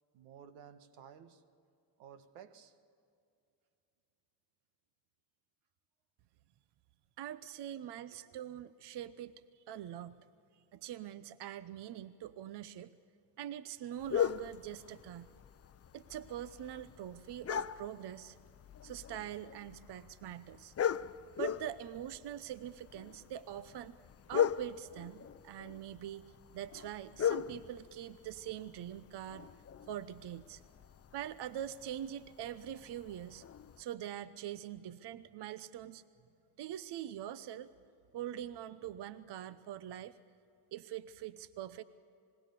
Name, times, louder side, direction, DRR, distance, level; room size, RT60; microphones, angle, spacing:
voice 1, 0.1-1.4 2.0-2.7 7.6-7.7 8.1-8.4, right 8 dB, 85° right, 1.5 m, -55 dB
voice 2, 7.2-10.2 10.5-12.9 13.4-15.3 15.9-18.4 18.8-20.7 21.4-24.0 24.3-26.2 26.5-29.5 29.9-30.6 31.1-33.4 33.8-36.0 36.6-37.7 38.1-40.2 40.7-41.8, right 11 dB, 55° right, 0.9 m, -43 dB
sound 1, 14.0-33.8, left 9 dB, 30° left, 0.6 m, -40 dB
26.5 x 20.5 x 6.8 m
cardioid pair, 90°, 50 cm